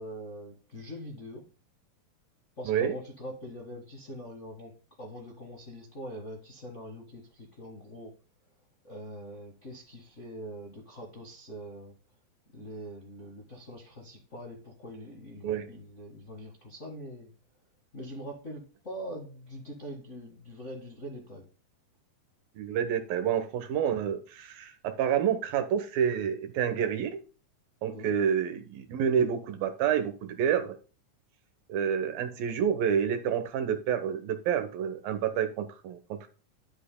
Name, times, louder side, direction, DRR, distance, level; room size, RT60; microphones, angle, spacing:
voice 1, 0.0-1.4 2.6-8.1 8.8-11.9 12.5-17.3 17.9-21.4 27.9-28.1, equal, 40° left, -1 dB, 1.0 m, -43 dB
voice 2, 22.6-27.2 27.8-30.8 31.7-36.3, right 8 dB, 75° right, 8 dB, 2.8 m, -28 dB
11.0 x 7.8 x 2.2 m, 0.36 s
omnidirectional pair, 4.2 m